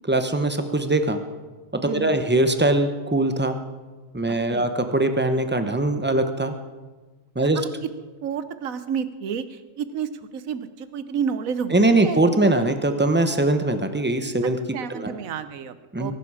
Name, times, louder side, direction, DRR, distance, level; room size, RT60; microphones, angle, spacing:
voice 1, 0.1-1.2 1.7-3.6 4.1-6.5 7.3-7.6 11.7-14.6 14.9-15.1 15.9-16.1, right 2 dB, 10° right, 7 dB, 0.7 m, -21 dB
voice 2, 1.8-2.2 4.5-4.7 7.4-7.7 8.2-12.2 14.7-16.1, right 7 dB, 65° right, 12 dB, 1.2 m, -30 dB
22.5 x 12.0 x 4.9 m, 1.3 s
omnidirectional pair, 1.6 m